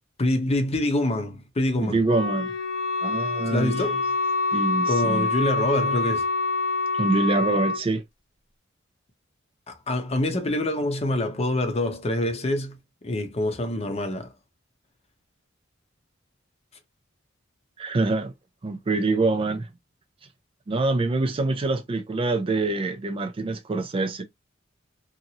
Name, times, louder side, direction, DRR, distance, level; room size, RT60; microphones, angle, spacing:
voice 1, 0.2-2.0 3.5-4.0 4.9-6.3 9.7-12.8 13.0-14.3, left 1 dB, 30° left, 0.7 m, -25 dB
voice 2, 1.8-2.5 3.0-3.8 4.5-5.3 7.0-8.0 17.8-18.3 18.6-19.7 20.7-24.2, right 3 dB, 25° right, 0.3 m, -25 dB
Wind instrument woodwind instrument, 2.0-7.8, left 3 dB, 90° left, 1.5 m, -26 dB
2.8 x 2.5 x 2.8 m
head